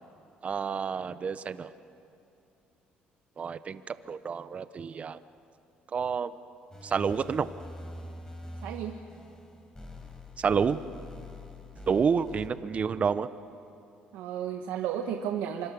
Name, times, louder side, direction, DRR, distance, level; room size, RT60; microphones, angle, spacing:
voice 1, 0.4-1.7 3.4-5.2 5.9-6.3 6.8-7.5 10.4-10.8 11.9-13.3, right 6 dB, 40° right, 14 dB, 0.8 m, -29 dB
sound 1, 6.7-12.5, left 1 dB, 20° left, 4.2 m, -45 dB
voice 2, 8.6-9.0 14.1-15.7, right 9 dB, 85° right, 4 dB, 1.2 m, -33 dB
26.0 x 24.5 x 7.0 m, 2.7 s
cardioid pair, 90°, 3 cm